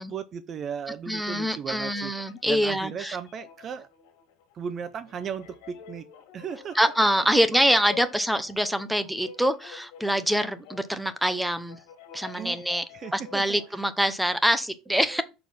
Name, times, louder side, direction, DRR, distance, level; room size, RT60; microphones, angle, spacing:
voice 1, 0.0-2.1 2.5-3.9 4.5-6.1 6.3-6.8 12.4-12.6 12.9-13.6 15.1-15.2, right 7 dB, 30° right, 0.5 m, -36 dB
voice 2, 1.1-3.2 6.7-11.8 12.1-12.8 13.1-15.2, equal, ahead, 0.7 m, -25 dB
sound 1, 1.7-13.8, left 9 dB, 90° left, 1.8 m, -49 dB
6.7 x 4.1 x 5.5 m
cardioid pair, 150°, 0 cm